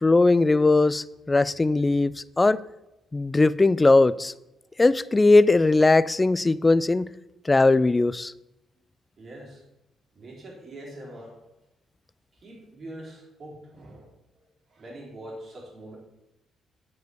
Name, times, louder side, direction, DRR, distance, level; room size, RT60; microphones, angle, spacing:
voice 1, 0.0-2.6 3.1-4.3 4.8-7.1 7.5-8.3, left 3 dB, 20° left, 0.3 m, -19 dB
voice 2, 9.2-9.6 10.1-11.4 12.3-14.1 14.7-16.0, right 1 dB, 45° right, 3.5 m, -43 dB
7.8 x 5.3 x 6.8 m
cardioid pair, 90°, 0 cm